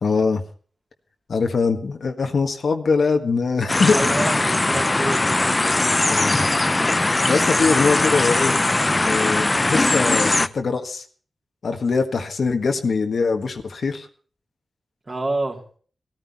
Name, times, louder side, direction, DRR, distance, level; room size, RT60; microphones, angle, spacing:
voice 1, 0.0-0.4 1.3-4.3 6.1-6.4 7.3-8.6 9.0-11.0 11.6-14.1, left 4 dB, 65° left, 5 dB, 1.7 m, -22 dB
sound 1, 3.7-10.5, left 2 dB, 25° left, 0.6 m, -20 dB
voice 2, 3.9-5.5 15.1-15.6, right 2 dB, 30° right, 1 dB, 3.2 m, -28 dB
18.0 x 13.5 x 4.3 m, 0.42 s
wide cardioid pair, 120°, 0 cm